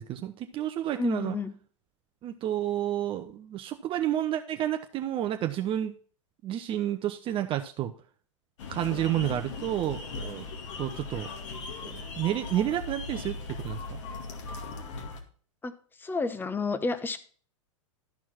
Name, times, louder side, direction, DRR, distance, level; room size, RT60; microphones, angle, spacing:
voice 1, 0.0-1.3 2.2-5.9 6.4-7.9 8.7-10.5 10.8-11.3 11.8-14.0, right 12 dB, 30° right, 7 dB, 0.7 m, -30 dB
voice 2, 0.9-1.5 15.6-15.7 16.0-17.2, left 3 dB, 10° left, 12 dB, 0.9 m, -30 dB
sound 1, 8.6-15.2, left 4 dB, 65° left, 2.1 m, -38 dB
13.0 x 4.6 x 5.9 m, 0.44 s
hypercardioid pair, 105°, 17 cm